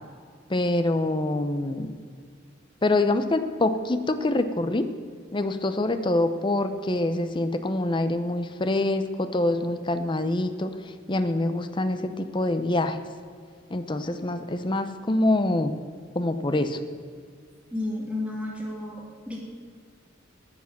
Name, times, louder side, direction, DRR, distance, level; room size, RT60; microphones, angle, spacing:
voice 1, 0.5-1.9 2.8-4.9 5.3-13.0 13.7-15.8 16.1-16.8, left 2 dB, 25° left, 9 dB, 0.7 m, -25 dB
voice 2, 17.7-19.4, left 2 dB, 5° right, -3 dB, 2.5 m, -32 dB
10.5 x 8.2 x 7.4 m, 2.1 s
head